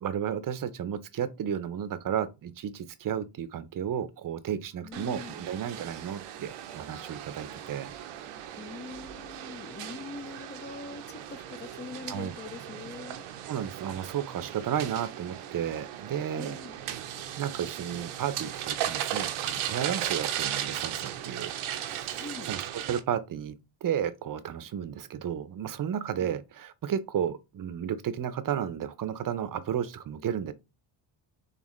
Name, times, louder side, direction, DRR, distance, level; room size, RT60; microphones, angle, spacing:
voice 1, 0.0-7.9 12.1-12.3 13.5-16.6 17.4-21.5 22.1-23.5 23.8-30.5, right 9 dB, 40° right, 0.6 m, -33 dB
voice 2, 4.8-5.5 8.6-13.3 16.4-16.8 22.1-22.5 26.2-26.4, left 4 dB, 25° left, 0.4 m, -43 dB
sound 1, 4.9-23.0, right 11 dB, 90° right, 0.7 m, -37 dB
4.1 x 3.3 x 3.1 m
cardioid pair, 100°, 49 cm